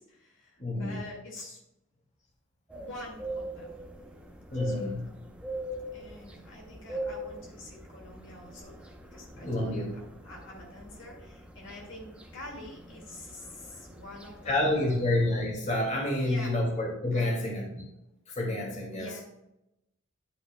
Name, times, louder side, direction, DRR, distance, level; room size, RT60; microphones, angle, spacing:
voice 1, 0.0-1.6 2.8-3.7 4.5-5.0 5.9-15.1 16.1-16.5 17.1-17.5 18.9-19.2, left 1 dB, 65° left, -2 dB, 2.2 m, -46 dB
voice 2, 0.6-1.0 4.5-5.1 9.4-9.9 14.4-17.8 18.3-19.1, left 1 dB, 35° left, -2 dB, 2.4 m, -29 dB
sound 1, 2.7-15.5, right 1 dB, 5° right, 0.8 m, -42 dB
9.5 x 8.4 x 2.3 m, 0.86 s
head